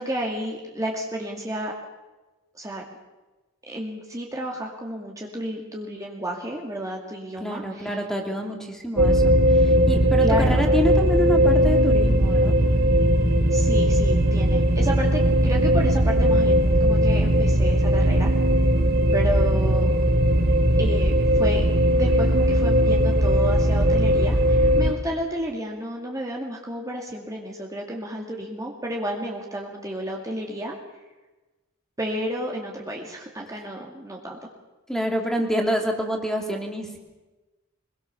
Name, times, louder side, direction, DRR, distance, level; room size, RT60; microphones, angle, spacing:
voice 1, 0.0-1.7 2.5-2.8 3.7-8.0 10.2-10.6 13.5-18.3 19.1-19.9 20.8-21.6 21.9-30.8 32.0-34.4, right 1 dB, 15° right, -1 dB, 2.3 m, -31 dB
voice 2, 7.4-12.5 34.9-37.0, equal, ahead, 2 dB, 2.9 m, -27 dB
sound 1, 9.0-24.9, equal, 45° right, 2.1 m, -19 dB
23.0 x 21.5 x 6.9 m, 1.1 s
head